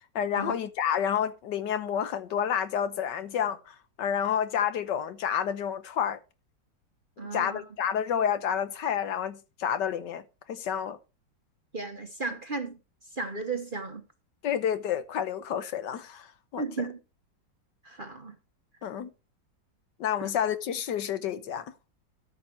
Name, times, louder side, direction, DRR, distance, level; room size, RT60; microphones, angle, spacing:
voice 1, 0.1-6.2 7.2-10.2 10.5-11.0 14.4-16.9 18.8-19.1 20.0-21.6, left 8 dB, 70° left, 1.5 m, -29 dB
voice 2, 7.2-7.6 11.7-12.8 13.1-14.0 16.6-17.0 17.8-18.3 20.2-20.3, right 4 dB, 35° right, 1.0 m, -35 dB
13.0 x 6.5 x 4.5 m
omnidirectional pair, 2.0 m